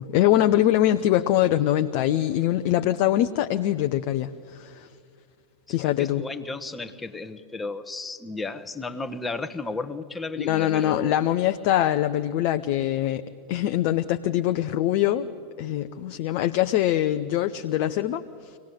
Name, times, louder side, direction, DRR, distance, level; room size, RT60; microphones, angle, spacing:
voice 1, 0.0-4.9 5.7-6.2 10.4-13.2 13.5-15.3 15.6-18.6, left 13 dB, 45° left, 8 dB, 0.7 m, -23 dB
voice 2, 6.0-11.1, left 3 dB, 10° left, 9 dB, 1.1 m, -33 dB
24.5 x 18.5 x 7.8 m, 2.3 s
figure-of-eight pair, 90°, 0 cm